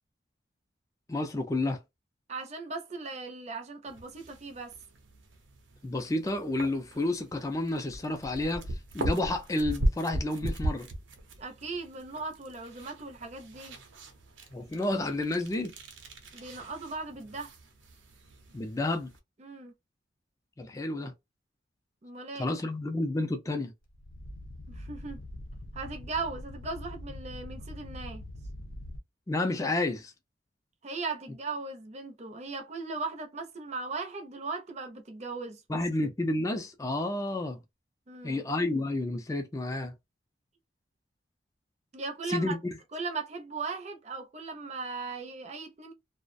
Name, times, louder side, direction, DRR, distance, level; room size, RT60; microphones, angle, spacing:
voice 1, 1.1-1.8 5.8-8.6 8.9-10.9 14.5-15.7 18.5-19.1 20.6-21.1 22.4-23.7 29.3-30.1 35.7-37.6 38.2-39.9 42.3-42.6, left 2 dB, 15° left, 0.4 m, -30 dB
voice 2, 2.3-4.7 11.4-13.8 16.3-17.5 19.4-19.7 22.0-22.5 24.7-25.2 25.7-28.2 30.8-35.6 38.1-38.4 41.9-42.6 42.9-45.9, right 3 dB, 35° right, 0.5 m, -38 dB
sound 1, 3.9-19.2, right 1 dB, 75° right, 0.6 m, -38 dB
sound 2, 23.8-29.0, left 1 dB, 80° left, 0.6 m, -43 dB
2.3 x 2.1 x 2.5 m
head